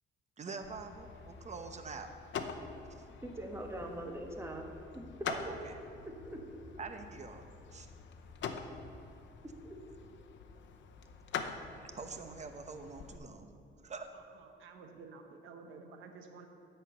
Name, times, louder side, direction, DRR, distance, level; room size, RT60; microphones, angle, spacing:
voice 1, 0.4-2.1 2.9-3.0 5.3-5.8 6.8-7.4 7.7-7.9 11.9-13.5 13.8-14.1, right 4 dB, 35° right, 7 dB, 0.9 m, -45 dB
sound 1, 0.6-13.2, left 6 dB, 65° left, 0.7 m, -45 dB
voice 2, 3.2-4.7 4.9-5.5 6.0-6.4 9.4-9.8, right 1 dB, 15° right, 2 dB, 1.4 m, -42 dB
voice 3, 14.6-16.5, right 4 dB, 85° right, 5 dB, 0.9 m, -51 dB
10.5 x 4.5 x 7.7 m, 2.5 s
cardioid pair, 90°, 20 cm